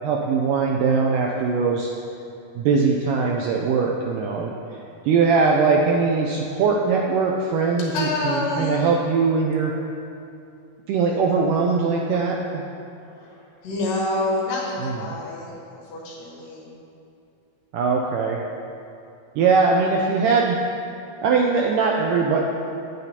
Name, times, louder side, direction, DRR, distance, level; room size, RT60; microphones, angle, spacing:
voice 1, 0.0-1.9 2.6-4.5 5.0-9.7 10.9-12.6 14.8-15.0 17.7-18.4 19.4-20.6 21.2-22.4, right 5 dB, 90° right, -1 dB, 1.8 m, -21 dB
voice 2, 7.9-8.9 13.0-16.7, left 2 dB, 70° left, -4 dB, 2.6 m, -28 dB
9.7 x 9.0 x 2.8 m, 2.6 s
omnidirectional pair, 4.3 m